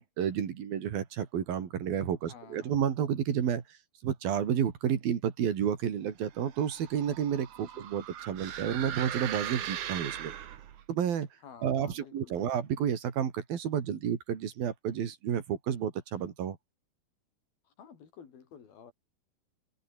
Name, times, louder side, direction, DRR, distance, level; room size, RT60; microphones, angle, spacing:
voice 1, 0.0-3.6 4.0-10.3 10.9-11.3 11.6-16.6, right 9 dB, 80° right, 4.5 m, -31 dB
voice 2, 2.3-2.8 7.6-7.8 11.4-12.4 17.8-18.9, left 7 dB, 80° left, 5.3 m, -52 dB
sound 1, 6.4-10.8, right 10 dB, 60° right, 3.0 m, -39 dB
omnidirectional pair, 4.2 m